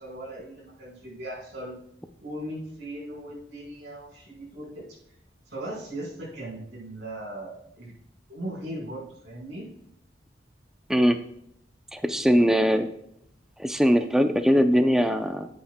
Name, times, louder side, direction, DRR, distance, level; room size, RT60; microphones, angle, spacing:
voice 1, 0.0-1.8 2.2-4.8 5.5-7.9 8.3-9.7, right 1 dB, 75° right, -4 dB, 4.5 m, -38 dB
voice 2, 11.9-12.9 13.6-15.5, equal, 5° right, 7 dB, 0.5 m, -21 dB
17.5 x 8.5 x 2.2 m, 0.74 s
head